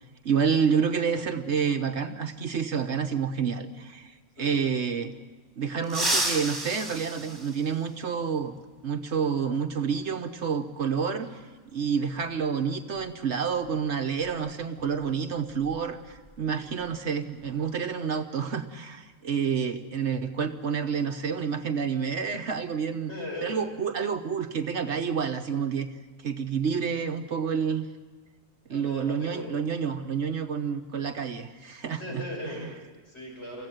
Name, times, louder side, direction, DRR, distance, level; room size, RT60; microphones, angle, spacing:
voice 1, 0.2-5.1 5.6-8.6 8.8-11.4 11.7-23.1 23.4-25.9 26.2-27.9 28.7-32.2 32.6-32.7, right 6 dB, 60° right, 7 dB, 1.2 m, -29 dB
sound 1, 5.8-8.3 9.9-10.0 11.2-11.3 13.0-13.1 13.5-13.7 14.2-16.3 16.6-16.9 17.3-17.7, right 1 dB, 15° right, 2.7 m, -32 dB
voice 2, 23.1-23.6 28.7-29.5 32.0-33.7, left 1 dB, 55° left, -1 dB, 6.6 m, -38 dB
24.5 x 15.5 x 9.0 m, 1.3 s
omnidirectional pair, 1.3 m